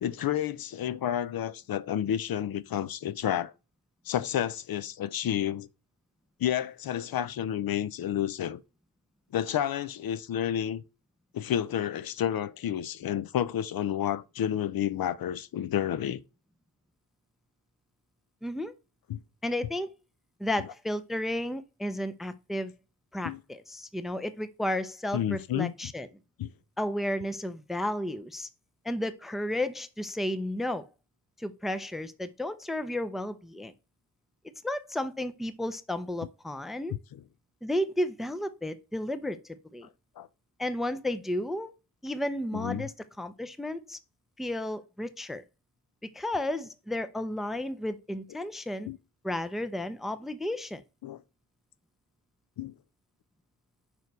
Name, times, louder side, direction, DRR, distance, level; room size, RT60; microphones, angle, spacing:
voice 1, 0.0-3.5 4.1-5.7 6.4-8.6 9.3-10.8 11.3-16.2 19.1-19.2 23.2-23.4 25.1-25.7 26.4-26.5 37.1-37.2 40.2-40.3 42.5-42.9 48.9-49.0 51.0-51.2 52.6-52.7, left 10 dB, 70° left, 0.5 m, -30 dB
voice 2, 18.4-18.7 19.4-19.9 20.4-22.7 23.1-26.1 26.8-28.5 28.8-30.9 31.4-33.7 34.6-36.9 37.6-39.9 40.6-41.7 42.0-44.0 44.4-45.4 46.1-48.9 49.2-50.8, left 1 dB, ahead, 0.4 m, -33 dB
5.3 x 4.7 x 4.6 m
wide cardioid pair, 150°, 37 cm